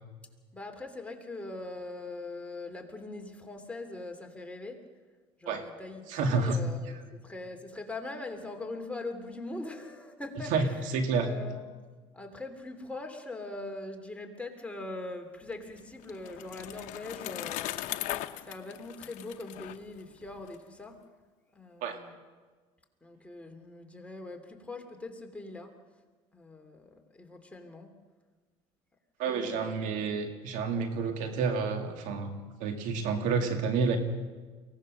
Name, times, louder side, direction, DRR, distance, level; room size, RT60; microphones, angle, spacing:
voice 1, 0.5-4.8 5.4-10.9 11.2-11.6 12.1-17.8 18.4-21.0 21.5-22.1 23.0-25.7 26.3-27.9 29.2-30.1, left 2 dB, 10° left, 3 dB, 3.0 m, -41 dB
voice 2, 6.1-6.6 10.5-10.7 10.9-11.3 21.8-22.0 29.2-34.0, right 4 dB, 70° right, 5 dB, 2.3 m, -29 dB
Bicycle, 15.5-20.6, left 15 dB, 70° left, 0.9 m, -39 dB
23.5 x 18.0 x 6.5 m, 1.4 s
supercardioid pair, 85°, 13 cm